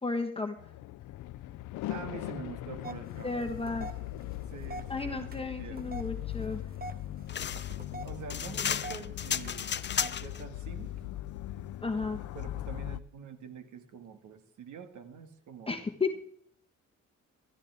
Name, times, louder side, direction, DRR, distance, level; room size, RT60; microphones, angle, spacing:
voice 1, 0.0-0.6 3.2-3.9 4.9-6.6 11.8-12.2 15.7-16.1, left 3 dB, 20° left, 4 dB, 1.3 m, -33 dB
sound 1, 0.6-13.0, left 14 dB, 80° left, 0.6 m, -40 dB
voice 2, 1.9-3.4 4.5-6.0 7.5-10.9 12.3-15.8, right 6 dB, 75° right, 8 dB, 2.0 m, -46 dB
sound 2, 2.8-11.1, right 3 dB, 30° right, 1.5 m, -48 dB
sound 3, 7.3-10.4, left 8 dB, 35° left, 0.6 m, -33 dB
16.5 x 14.0 x 3.6 m, 0.63 s
cardioid pair, 90°, 30 cm